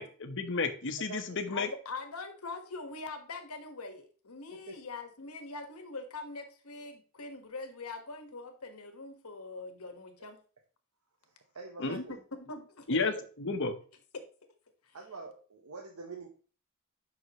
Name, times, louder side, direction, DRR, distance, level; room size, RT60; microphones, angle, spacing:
voice 1, 0.0-1.7 11.8-12.0 12.9-13.1 13.4-13.7, left 3 dB, 60° left, 7 dB, 1.1 m, -32 dB
voice 2, 1.0-1.4 4.7-4.8 11.2-12.2 13.0-13.3 14.9-16.3, right 4 dB, 85° right, 2 dB, 1.1 m, -45 dB
voice 3, 1.5-10.4 11.8-13.0 14.8-15.0, left 3 dB, 80° left, 6 dB, 1.5 m, -43 dB
9.9 x 6.0 x 3.0 m, 0.39 s
head